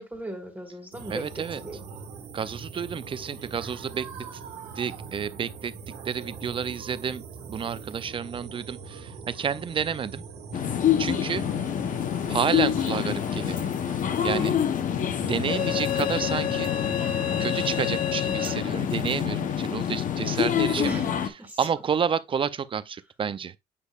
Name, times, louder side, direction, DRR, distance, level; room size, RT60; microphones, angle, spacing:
voice 1, 0.0-1.8 20.8-21.7, right 2 dB, 10° right, 1.5 m, -37 dB
sound 1, 0.9-17.8, right 5 dB, 85° right, 1.6 m, -42 dB
voice 2, 1.1-1.6 2.3-4.4 4.7-5.7 6.0-7.2 7.5-10.2 10.7-11.5 12.3-13.6 14.2-14.6 15.2-16.7 17.4-21.1 21.6-23.5, right 7 dB, 30° right, 0.5 m, -30 dB
sound 2, 10.5-21.3, left 9 dB, 50° left, 0.8 m, -26 dB
8.3 x 5.2 x 2.4 m
cardioid pair, 110°, 17 cm